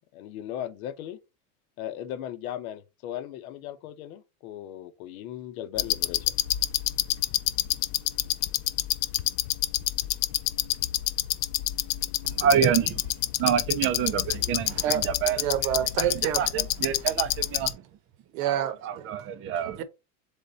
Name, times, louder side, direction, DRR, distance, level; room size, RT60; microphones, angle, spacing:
voice 1, 0.1-1.2 1.8-6.4, left 11 dB, 70° left, 0.9 m, -37 dB
sound 1, 5.8-17.7, left 15 dB, 50° left, 0.5 m, -28 dB
voice 2, 12.2-13.1 13.4-15.4 16.0-17.8 18.8-19.8, right 8 dB, 30° right, 0.4 m, -27 dB
voice 3, 14.7-15.0 15.4-16.4 18.3-19.2 19.8-19.9, right 10 dB, 65° right, 0.9 m, -28 dB
3.5 x 3.5 x 3.9 m
supercardioid pair, 125°, 43 cm